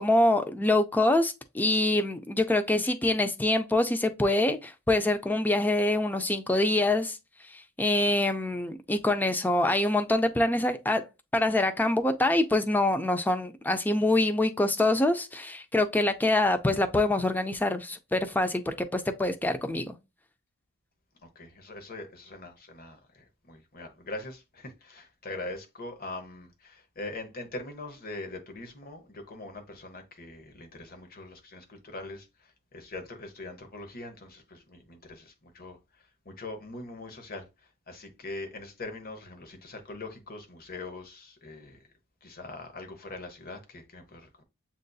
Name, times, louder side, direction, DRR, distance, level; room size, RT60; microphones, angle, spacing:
voice 1, 0.0-7.2 7.5-11.0 11.3-20.0, left 2 dB, 10° left, 0.4 m, -25 dB
voice 2, 21.2-41.8 42.2-44.4, left 2 dB, 45° left, 0.9 m, -42 dB
7.3 x 2.6 x 2.3 m
head